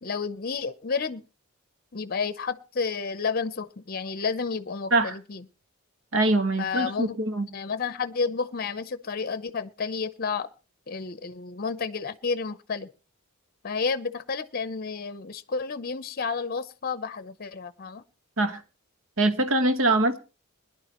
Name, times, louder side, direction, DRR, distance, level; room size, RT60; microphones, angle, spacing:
voice 1, 0.0-1.2 1.9-5.4 6.6-7.2 7.5-10.5 10.9-12.9 13.6-18.0, left 5 dB, 45° left, 0.7 m, -31 dB
voice 2, 6.1-7.5 18.4-18.6 19.2-20.2, right 2 dB, 65° right, 1.4 m, -23 dB
21.0 x 11.0 x 3.0 m
head